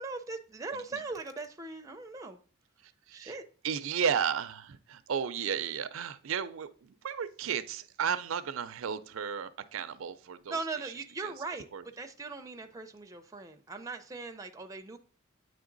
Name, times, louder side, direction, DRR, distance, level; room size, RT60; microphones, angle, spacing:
voice 1, 0.0-2.4 3.1-3.4 10.5-15.0, right 3 dB, 15° right, 6 dB, 0.5 m, -40 dB
voice 2, 3.6-10.5 11.2-11.3 11.7-11.8, right 7 dB, 80° right, 12 dB, 0.5 m, -33 dB
8.7 x 3.3 x 3.8 m, 0.43 s
head